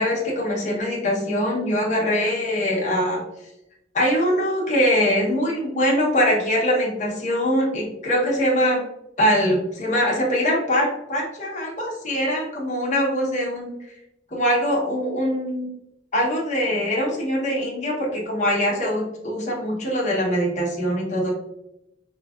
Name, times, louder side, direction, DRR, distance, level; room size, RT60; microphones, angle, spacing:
voice 1, 0.0-3.2 3.9-8.8 9.2-13.7 14.3-15.7 16.1-21.3, equal, 40° left, -3 dB, 1.0 m, -22 dB
3.7 x 2.9 x 2.4 m, 0.84 s
head